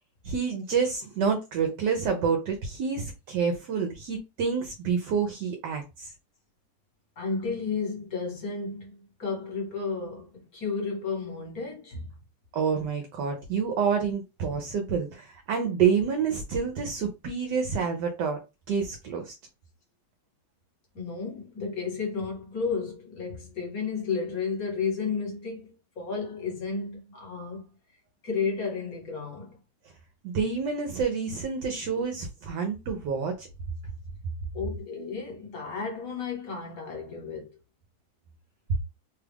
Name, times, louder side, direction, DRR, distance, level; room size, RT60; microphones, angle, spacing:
voice 1, 0.2-6.1 12.5-18.4 18.7-19.3 30.2-33.5, right 6 dB, 75° right, 1.3 m, -28 dB
voice 2, 7.2-12.1 20.9-27.6 28.2-29.5 34.5-37.5, left 5 dB, 55° left, 1.6 m, -32 dB
3.3 x 2.3 x 3.4 m
omnidirectional pair, 1.9 m